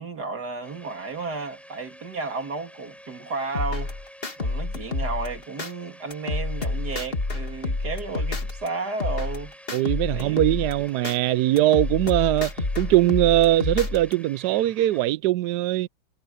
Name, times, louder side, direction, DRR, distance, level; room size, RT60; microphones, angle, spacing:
voice 1, 0.0-3.9 4.4-9.5 10.1-10.7, right 4 dB, 55° right, 3.3 m, -33 dB
sound 1, 0.6-15.1, equal, ahead, 4.1 m, -49 dB
sound 2, 3.5-5.7 6.1-8.7 9.0-11.2 11.6-14.1, left 3 dB, 30° left, 2.0 m, -29 dB
voice 2, 9.7-15.9, right 15 dB, 75° right, 1.0 m, -21 dB
omnidirectional pair, 2.1 m